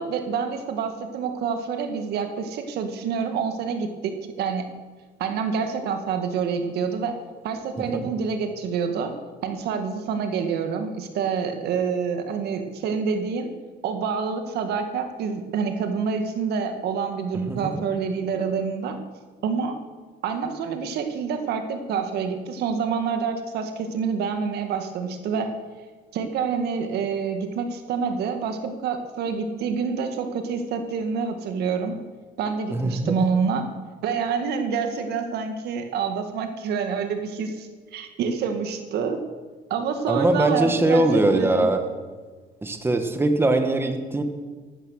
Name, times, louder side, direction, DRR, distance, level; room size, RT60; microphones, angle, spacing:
voice 1, 0.0-4.7 5.2-7.1 7.4-9.1 9.4-13.5 13.8-19.0 19.4-19.8 20.2-25.5 26.1-31.9 32.4-33.7 34.0-39.2 39.7-41.7, right 6 dB, 75° right, 6 dB, 1.8 m, -27 dB
voice 2, 32.7-33.2 40.1-41.8 42.6-44.2, right 2 dB, 15° right, 6 dB, 1.6 m, -21 dB
14.5 x 12.0 x 6.5 m, 1.4 s
cardioid pair, 110°, 17 cm